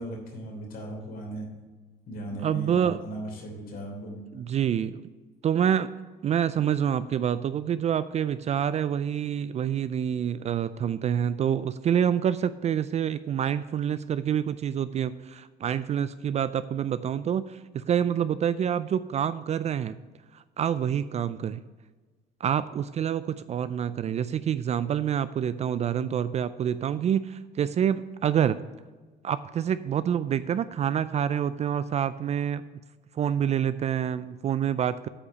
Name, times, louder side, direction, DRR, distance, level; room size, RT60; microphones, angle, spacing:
voice 1, 0.0-1.5 2.1-4.2, right 1 dB, 60° left, 0 dB, 3.3 m, -37 dB
voice 2, 2.4-3.0 4.3-5.0 5.4-5.9 6.2-20.0 20.3-21.6 22.4-28.6 29.2-32.6 33.1-35.1, right 9 dB, 40° right, 14 dB, 0.4 m, -27 dB
8.6 x 5.0 x 6.8 m, 1.3 s
cardioid pair, 110°, 17 cm